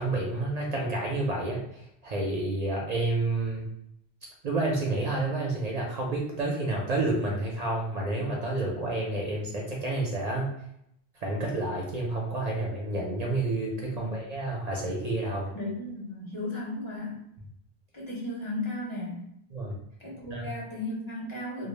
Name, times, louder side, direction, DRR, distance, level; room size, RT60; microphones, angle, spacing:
voice 1, 0.0-1.6 2.0-3.7 4.4-10.5 11.2-15.5 19.5-19.7 20.3-20.5, right 2 dB, 55° right, -2 dB, 0.5 m, -29 dB
voice 2, 13.9-14.2 15.5-17.2 17.9-19.2 20.0-21.7, left 2 dB, 35° left, -5 dB, 0.5 m, -35 dB
2.1 x 2.0 x 3.1 m, 0.75 s
omnidirectional pair, 1.1 m